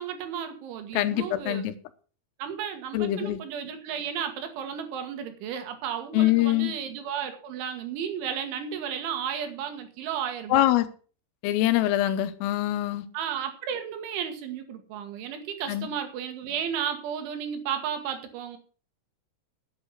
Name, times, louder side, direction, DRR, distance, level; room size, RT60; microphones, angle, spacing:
voice 1, 0.0-1.7 2.4-10.7 13.1-18.6, right 8 dB, 70° right, 7 dB, 3.7 m, -33 dB
voice 2, 1.0-1.7 2.9-3.4 6.1-6.7 10.5-10.9 11.4-13.1 15.7-15.9, left 14 dB, 85° left, 12 dB, 3.5 m, -24 dB
11.5 x 8.3 x 6.3 m, 0.38 s
omnidirectional pair, 6.0 m